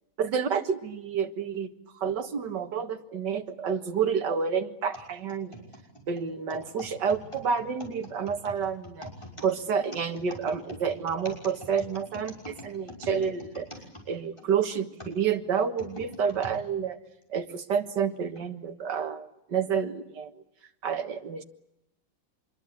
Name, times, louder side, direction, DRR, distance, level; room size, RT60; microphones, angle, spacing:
voice 1, 0.2-5.6 6.1-9.1 9.4-13.7 14.1-17.0 17.3-20.3 20.8-21.4, right 6 dB, 60° right, 7 dB, 2.1 m, -29 dB
sound 1, 4.9-14.5 15.0-16.6 17.2-17.3 18.2-18.4, equal, 15° left, 6.0 m, -44 dB
25.5 x 22.5 x 8.4 m, 0.83 s
omnidirectional pair, 2.2 m